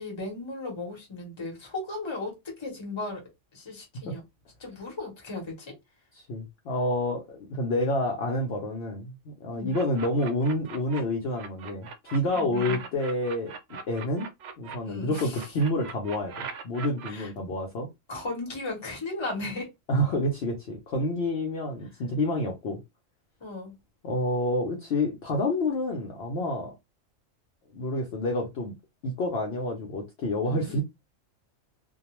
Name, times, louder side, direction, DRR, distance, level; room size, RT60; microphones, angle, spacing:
voice 1, 0.0-3.2 3.5-4.2 4.6-5.7 9.5-9.8 12.3-12.8 14.8-15.5 17.1-17.3 18.1-19.7 23.4-23.7 30.4-30.8, left 2 dB, 25° left, 0.9 m, -36 dB
voice 2, 6.3-13.5 13.9-14.3 14.6-17.9 19.9-22.8 24.0-26.7 27.7-28.7 29.0-30.8, left 1 dB, 60° left, 0.8 m, -28 dB
sound 1, 9.7-11.0 11.4-14.8 15.1-17.1, right 6 dB, 65° right, 0.7 m, -40 dB
2.3 x 2.2 x 2.9 m
omnidirectional pair, 1.4 m